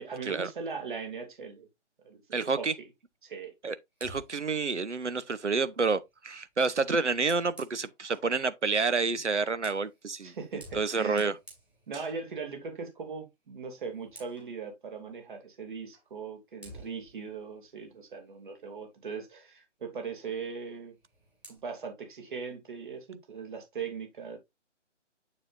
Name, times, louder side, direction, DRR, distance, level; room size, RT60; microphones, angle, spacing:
voice 1, 0.0-1.7 2.0-2.7 3.2-3.5 10.2-11.3 11.9-21.0 21.5-24.4, right 5 dB, 45° right, 2.8 m, -39 dB
voice 2, 2.3-2.7 3.6-3.7 4.0-10.3 10.7-11.3, right 4 dB, 75° right, 1.0 m, -29 dB
Fire, 3.9-8.4 9.3-12.5 12.9-13.1 13.5-14.6 15.9-16.1 16.6-18.9 20.8-21.6, right 1 dB, 5° right, 1.9 m, -54 dB
7.1 x 7.0 x 2.6 m
figure-of-eight pair, 145°, 36 cm